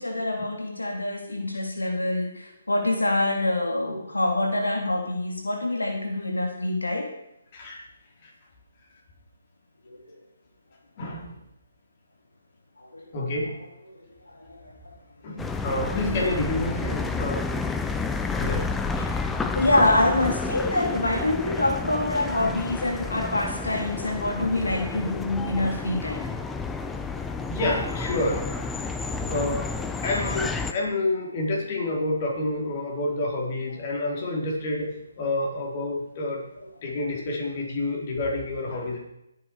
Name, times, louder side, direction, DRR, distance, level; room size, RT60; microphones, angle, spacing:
voice 1, 0.0-7.1 12.9-13.1 14.5-14.6 19.5-26.2 29.1-29.3, left 2 dB, 80° left, 2 dB, 3.1 m, -25 dB
voice 2, 11.0-11.4 13.1-13.6 15.2-17.5 18.4-18.7 19.0-19.1 27.5-28.7 29.3-29.7 30.0-36.5 36.8-39.0, left 2 dB, 35° left, -1 dB, 4.4 m, -28 dB
sound 1, 15.4-30.7, left 4 dB, 5° left, 0.8 m, -30 dB
20.5 x 9.8 x 4.9 m, 0.84 s
figure-of-eight pair, 140°, 0 cm